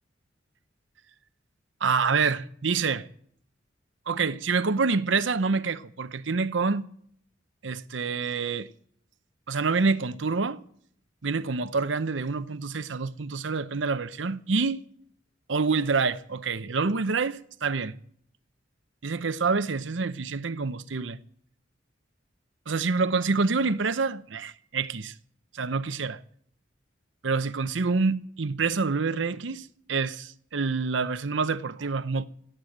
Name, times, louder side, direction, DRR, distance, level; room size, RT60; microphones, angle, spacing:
voice 1, 1.8-3.1 4.1-6.9 7.6-8.7 9.5-10.6 11.2-14.8 15.5-18.0 19.0-21.2 22.7-25.1 25.5-26.2 27.2-32.3, right 4 dB, 85° right, 0.8 m, -27 dB
16.5 x 9.0 x 7.8 m
head